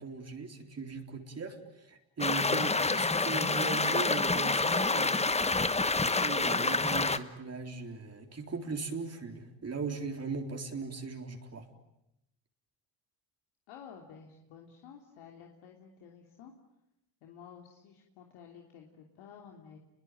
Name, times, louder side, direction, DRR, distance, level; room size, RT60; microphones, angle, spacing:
voice 1, 0.0-5.1 5.9-11.6, right 4 dB, 30° right, 4 dB, 3.9 m, -39 dB
sound 1, 2.2-7.2, left 3 dB, 15° left, 1.2 m, -28 dB
voice 2, 13.7-16.5 17.2-19.8, left 7 dB, 80° left, 2 dB, 3.2 m, -52 dB
29.5 x 22.0 x 9.3 m, 0.84 s
cardioid pair, 100°, 48 cm